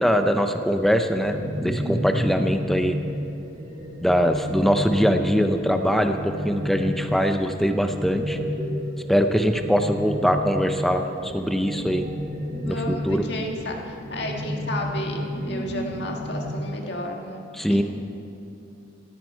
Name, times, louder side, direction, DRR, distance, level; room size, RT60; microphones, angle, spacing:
voice 1, 0.0-3.0 4.0-8.4 9.1-12.0 12.6-13.2 17.5-17.8, equal, ahead, 6 dB, 0.6 m, -22 dB
sound 1, 0.7-16.6, equal, 40° right, 1.9 m, -31 dB
voice 2, 12.6-17.8, left 1 dB, 55° left, 1 dB, 1.7 m, -32 dB
16.0 x 14.0 x 4.5 m, 2.6 s
head